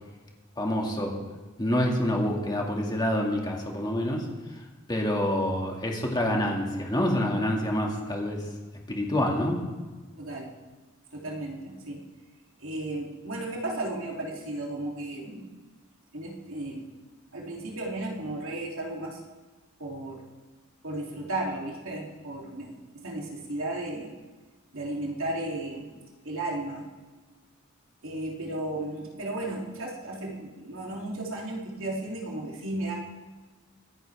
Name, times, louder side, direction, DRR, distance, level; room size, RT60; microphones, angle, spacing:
voice 1, 0.6-1.1 1.6-4.3 4.9-8.4 8.9-9.6, left 1 dB, 20° left, 0 dB, 2.1 m, -27 dB
voice 2, 10.2-10.5 11.1-12.0 12.6-15.5 16.1-16.9 17.3-19.2 19.8-20.2 20.8-24.1 24.7-25.9 26.2-26.8 28.0-33.0, right 1 dB, 70° right, -2 dB, 3.0 m, -34 dB
24.5 x 10.5 x 3.5 m, 1.3 s
head